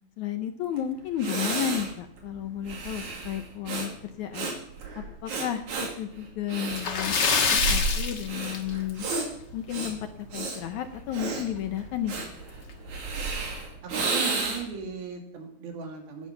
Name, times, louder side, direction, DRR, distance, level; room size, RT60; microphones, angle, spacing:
voice 1, 0.2-4.5 5.0-5.7 6.0-7.1 7.5-9.1 9.5-12.1, left 10 dB, 70° left, 8 dB, 1.9 m, -32 dB
Breathing, 0.8-0.9 1.2-14.8, right 3 dB, 55° right, 3.8 m, -32 dB
Splash splatter, 6.7-9.1 9.4-9.6 10.0-10.1 11.6-11.7 12.0-12.1 12.7-13.0, left 5 dB, 50° left, 1.2 m, -26 dB
voice 2, 13.8-16.3, right 4 dB, 85° right, 3 dB, 4.2 m, -37 dB
18.5 x 10.0 x 5.8 m, 0.70 s
omnidirectional pair, 4.2 m